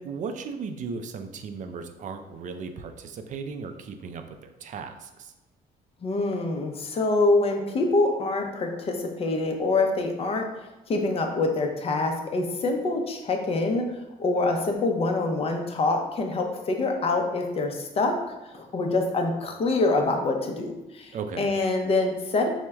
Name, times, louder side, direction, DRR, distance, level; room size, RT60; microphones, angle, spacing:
voice 1, 0.0-5.3 21.1-21.5, right 5 dB, 50° right, 7 dB, 0.4 m, -36 dB
voice 2, 6.0-10.5 10.9-18.2 18.5-22.5, left 2 dB, 35° left, 3 dB, 0.6 m, -25 dB
4.5 x 2.1 x 3.4 m, 1.0 s
cardioid pair, 110°, 17 cm